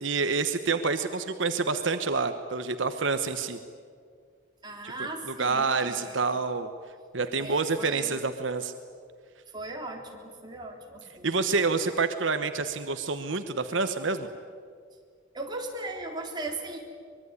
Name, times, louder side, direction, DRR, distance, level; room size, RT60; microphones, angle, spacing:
voice 1, 0.0-3.6 5.4-6.7 7.1-8.7 11.2-14.3, right 4 dB, 75° right, 9 dB, 1.2 m, -27 dB
voice 2, 4.6-6.3 7.4-8.2 9.5-11.4 15.3-16.8, right 2 dB, 20° right, 0 dB, 3.8 m, -38 dB
24.5 x 22.0 x 9.8 m, 2.1 s
head